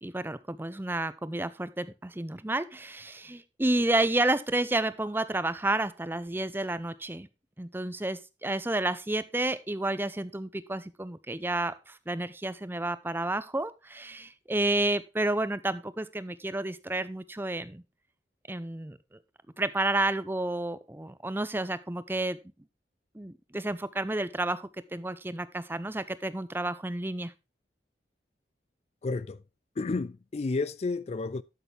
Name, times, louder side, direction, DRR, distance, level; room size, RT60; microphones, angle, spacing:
voice 1, 0.0-7.3 7.6-17.8 18.5-19.0 19.6-22.4 23.1-27.3, right 2 dB, 10° right, 0.6 m, -30 dB
voice 2, 29.0-29.4 29.8-31.4, left 3 dB, 35° left, 0.4 m, -31 dB
12.5 x 6.8 x 3.3 m
head